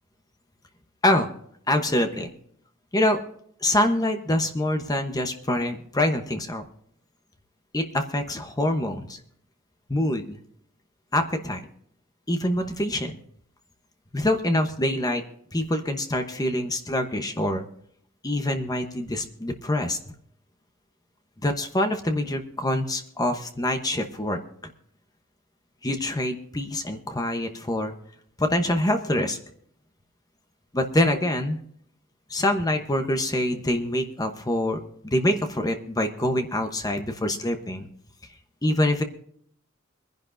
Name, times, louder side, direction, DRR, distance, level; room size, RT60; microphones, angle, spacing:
voice 1, 1.7-2.3 2.9-3.2 3.6-6.6 7.7-9.2 9.9-10.4 11.1-11.6 12.3-13.2 14.1-15.2 15.5-17.6 18.2-20.0 21.4-24.4 25.8-27.9 28.4-29.4 30.7-31.6 32.3-37.9 38.6-39.0, left 1 dB, 20° left, 5 dB, 1.0 m, -25 dB
23.5 x 10.5 x 2.6 m, 0.66 s
head